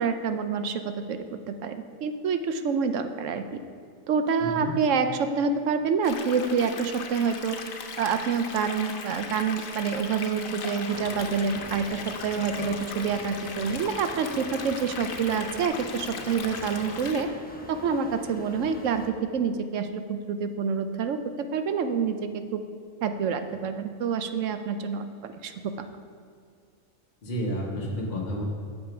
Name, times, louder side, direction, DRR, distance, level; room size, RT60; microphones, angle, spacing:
voice 1, 0.0-3.4 4.1-7.6 8.0-17.3 17.7-21.2 21.5-22.6 23.0-25.5, right 6 dB, 75° right, 9 dB, 1.0 m, -27 dB
voice 2, 4.4-4.7 27.2-28.4, equal, 40° left, -3 dB, 1.3 m, -31 dB
sound 1, 6.0-17.2, left 5 dB, 85° left, 1.2 m, -38 dB
sound 2, 10.9-19.1, left 2 dB, 10° left, 0.6 m, -43 dB
8.5 x 6.9 x 5.8 m, 2.1 s
omnidirectional pair, 1.4 m